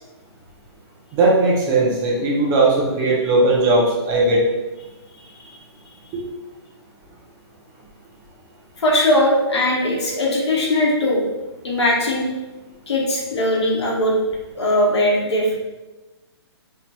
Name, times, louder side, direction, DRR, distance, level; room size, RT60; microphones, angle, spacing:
voice 1, 1.1-4.4 6.1-6.2, right 2 dB, 25° right, -2 dB, 0.5 m, -18 dB
voice 2, 5.1-5.6 8.8-11.3 11.6-12.3 12.9-14.2 14.5-15.6, left 1 dB, 75° left, -3 dB, 0.9 m, -20 dB
2.8 x 2.8 x 2.2 m, 1.1 s
hypercardioid pair, 140°, 14 cm